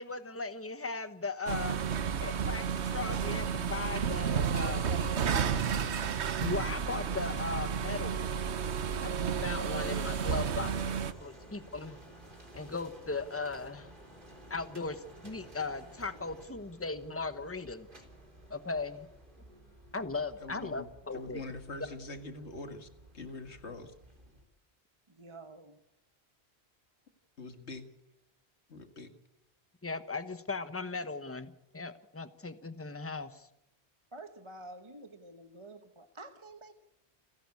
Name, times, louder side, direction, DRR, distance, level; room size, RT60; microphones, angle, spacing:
voice 1, 0.0-1.8 2.2-5.0 6.1-8.5 9.0-10.7 11.2-12.0 12.5-13.9 14.5-17.9 18.5-19.1 19.9-21.4 29.8-33.5, left 4 dB, 15° left, 1.1 m, -38 dB
sound 1, 1.5-11.1, right 7 dB, 85° right, 1.3 m, -32 dB
voice 2, 4.9-5.4 25.1-25.8 34.1-36.7, right 2 dB, 30° right, 1.1 m, -49 dB
sound 2, 6.6-24.4, right 1 dB, 50° right, 4.0 m, -53 dB
voice 3, 20.4-20.9 21.1-22.9 23.1-23.9 27.4-27.9 28.7-29.1, left 2 dB, 85° left, 2.2 m, -43 dB
29.5 x 11.0 x 8.4 m
omnidirectional pair, 1.1 m